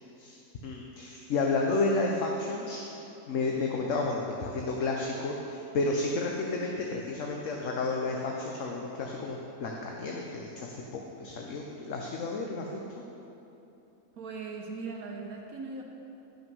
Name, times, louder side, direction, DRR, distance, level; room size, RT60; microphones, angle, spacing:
voice 1, 0.6-2.8 3.3-12.7, left 3 dB, 60° left, 0 dB, 1.0 m, -31 dB
voice 2, 14.1-15.8, right 4 dB, 70° right, 0 dB, 1.3 m, -39 dB
12.0 x 5.7 x 5.3 m, 2.9 s
omnidirectional pair, 1.7 m